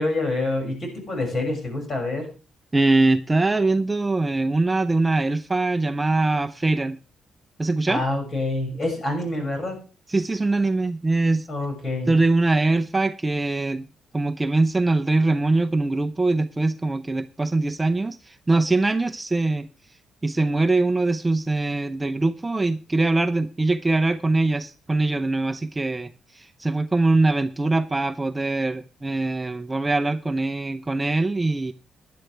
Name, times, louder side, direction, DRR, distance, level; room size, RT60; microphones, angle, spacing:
voice 1, 0.0-2.3 7.9-9.8 11.5-12.2, left 2 dB, 45° left, 6.3 m, -27 dB
voice 2, 2.7-7.0 7.6-8.0 10.1-11.5 12.1-13.8 14.1-19.7 20.2-26.1 26.3-31.7, right 2 dB, 20° right, 0.7 m, -22 dB
15.5 x 10.5 x 3.4 m
cardioid pair, 80°, 0 cm